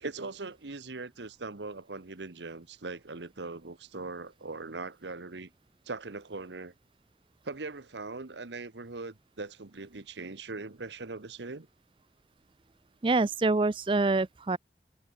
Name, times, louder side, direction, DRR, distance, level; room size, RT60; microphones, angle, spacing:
voice 1, 0.0-5.5 5.8-6.7 7.4-11.7, right 3 dB, 90° right, 1.2 m, -40 dB
voice 2, 13.0-14.6, right 3 dB, 30° right, 0.4 m, -26 dB
head